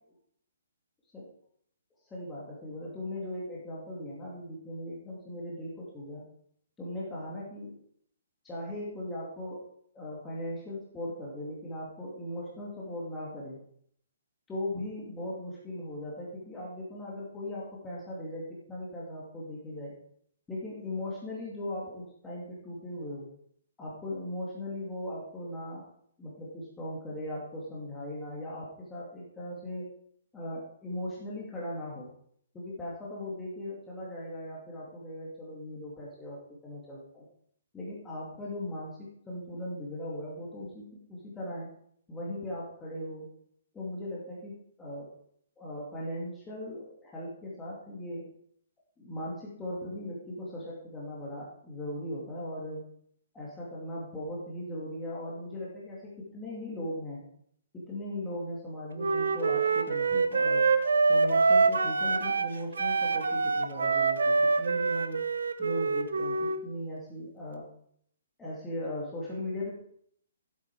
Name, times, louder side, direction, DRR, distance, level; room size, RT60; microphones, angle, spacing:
voice 1, 2.1-6.2 6.8-7.7 8.4-13.6 14.5-19.9 20.5-23.3 23.8-25.9 26.2-30.0 30.3-32.1 32.5-37.3 37.7-41.7 42.1-43.3 43.7-45.1 45.6-48.3 49.0-52.8 53.3-57.2 57.7-60.7 61.1-65.2 65.6-67.7 68.4-69.7, left 1 dB, 10° left, -6 dB, 2.3 m, -38 dB
Wind instrument woodwind instrument, 59.0-62.5 62.8-66.6, right 4 dB, 85° right, 0.9 m, -25 dB
14.5 x 8.2 x 4.7 m, 0.67 s
hypercardioid pair, 160°, 0 cm